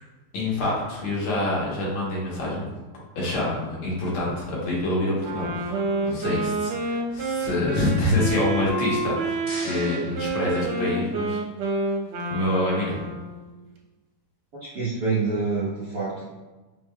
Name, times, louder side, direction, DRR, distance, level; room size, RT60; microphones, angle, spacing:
voice 1, 0.3-2.7 3.2-11.4 12.3-13.0, left 1 dB, 75° left, -5 dB, 2.0 m, -26 dB
Wind instrument woodwind instrument, 5.2-13.4, right 2 dB, 80° right, 1.6 m, -29 dB
sound 1, 8.9-11.1, left 1 dB, 45° left, 0.7 m, -42 dB
voice 2, 14.6-16.2, right 4 dB, 60° right, -8 dB, 1.0 m, -26 dB
5.2 x 3.1 x 2.2 m, 1.2 s
omnidirectional pair, 2.4 m